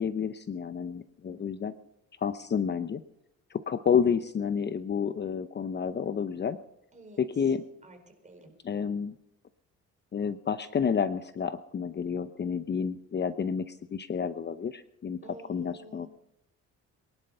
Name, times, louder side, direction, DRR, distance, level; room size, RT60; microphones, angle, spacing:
voice 1, 0.0-1.7 2.2-3.0 3.5-6.6 7.2-7.6 8.6-9.1 10.1-15.2 15.5-16.1, left 7 dB, 35° left, 12 dB, 0.8 m, -30 dB
voice 2, 1.3-1.8 6.9-7.6 7.8-8.9 15.2-16.1, right 1 dB, 25° right, 4 dB, 4.6 m, -51 dB
22.5 x 11.5 x 5.6 m, 0.81 s
cardioid pair, 110°, 29 cm